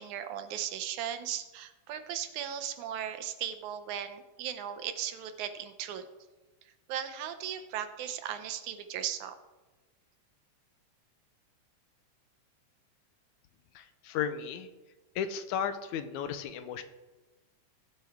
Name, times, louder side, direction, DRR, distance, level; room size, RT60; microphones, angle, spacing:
voice 1, 0.0-6.1 6.9-9.3, right 9 dB, 75° right, 9 dB, 2.2 m, -37 dB
voice 2, 13.8-14.7 15.2-16.8, left 8 dB, 80° left, 10 dB, 2.1 m, -34 dB
20.5 x 8.2 x 3.5 m, 1.2 s
omnidirectional pair, 3.5 m